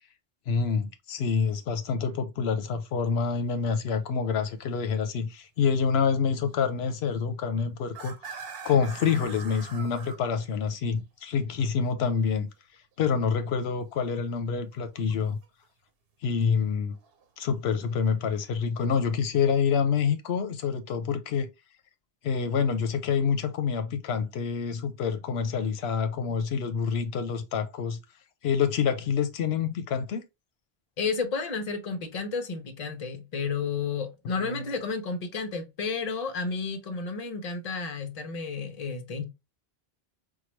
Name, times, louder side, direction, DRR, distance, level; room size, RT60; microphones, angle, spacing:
voice 1, 0.5-12.5 13.0-15.4 16.2-17.0 17.4-21.5 22.2-28.0 28.4-30.2 34.4-34.8, left 6 dB, 85° left, 0.8 m, -27 dB
sound 1, 3.2-3.3 3.8-4.0 4.4-4.5 6.4-6.5 7.8-11.0 14.1-15.7 16.9-17.2, right 5 dB, 70° right, 0.9 m, -44 dB
voice 2, 31.0-39.2, left 4 dB, 40° left, 0.8 m, -32 dB
4.6 x 2.2 x 3.0 m
omnidirectional pair, 1.1 m